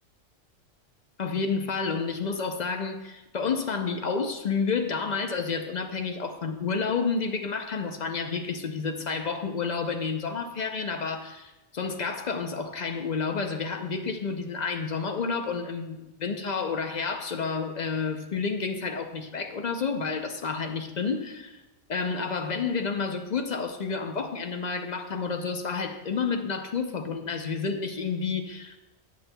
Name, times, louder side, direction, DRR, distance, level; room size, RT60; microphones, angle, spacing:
voice 1, 1.2-21.6 21.9-28.9, left 5 dB, 50° left, 5 dB, 0.5 m, -30 dB
16.5 x 6.0 x 2.2 m, 1.0 s
omnidirectional pair, 1.3 m